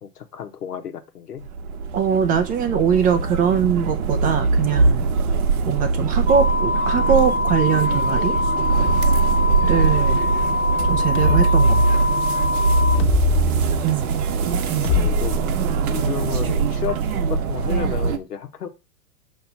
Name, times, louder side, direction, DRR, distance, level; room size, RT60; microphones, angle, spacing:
voice 1, 0.0-1.5 12.9-13.5 13.8-14.1 14.7-15.4 15.9-17.0 17.3-18.7, left 8 dB, 75° left, 1.4 m, -32 dB
sound 1, 1.4-18.2, right 4 dB, 65° right, 1.0 m, -21 dB
voice 2, 1.9-5.1 5.7-8.3 9.6-10.2 10.9-12.1 13.8-14.2 14.7-15.0, right 7 dB, 20° right, 0.5 m, -22 dB
sound 2, 6.3-13.0, left 3 dB, 35° right, 0.9 m, -24 dB
sound 3, 11.2-11.4 13.0-13.5 14.8-16.0, left 7 dB, 25° left, 1.6 m, -23 dB
6.5 x 3.2 x 5.8 m
hypercardioid pair, 105°, 47 cm